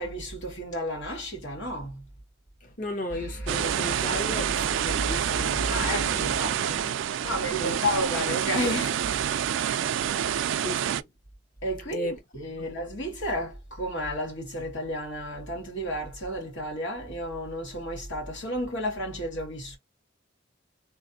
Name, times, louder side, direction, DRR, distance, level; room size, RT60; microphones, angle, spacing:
voice 1, 0.0-2.1 5.7-6.9 7.2-9.1 9.6-9.7 10.2-10.5 11.6-19.8, equal, 80° left, 2.1 m, -32 dB
voice 2, 2.6-6.3 7.5-7.8 10.6-11.0 11.9-12.2 12.5-12.9, left 1 dB, 45° left, 1.0 m, -35 dB
sound 1, 3.1-8.0, right 1 dB, 65° left, 1.6 m, -37 dB
sound 2, 3.5-11.0, right 9 dB, 85° right, 0.3 m, -27 dB
3.2 x 2.5 x 2.6 m
head